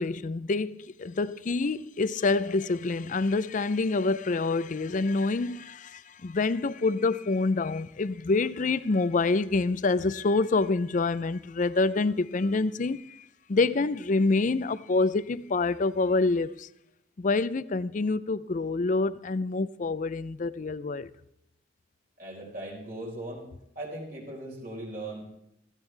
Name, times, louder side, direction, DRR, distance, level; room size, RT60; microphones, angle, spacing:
voice 1, 0.0-16.7 17.2-21.1, left 3 dB, 45° left, 0.5 m, -27 dB
voice 2, 22.2-23.5 23.7-25.2, right 1 dB, 50° right, 4.5 m, -38 dB
16.5 x 14.5 x 3.3 m
head